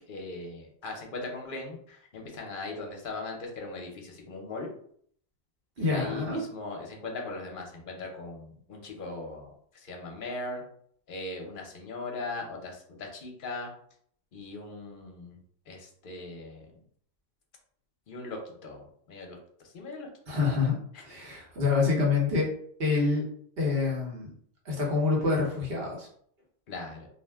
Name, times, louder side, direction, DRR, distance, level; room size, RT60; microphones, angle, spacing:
voice 1, 0.0-4.7 5.8-10.6 11.1-13.7 14.3-15.4 15.7-16.7 18.1-19.4 19.7-20.1 26.7-27.1, left 3 dB, 55° left, 1 dB, 0.8 m, -39 dB
voice 2, 5.8-6.4 20.3-20.7 21.0-22.5 22.8-23.2 23.6-24.3 24.6-26.1, left 4 dB, 60° right, -2 dB, 1.1 m, -26 dB
2.4 x 2.1 x 3.4 m, 0.62 s
omnidirectional pair, 1.1 m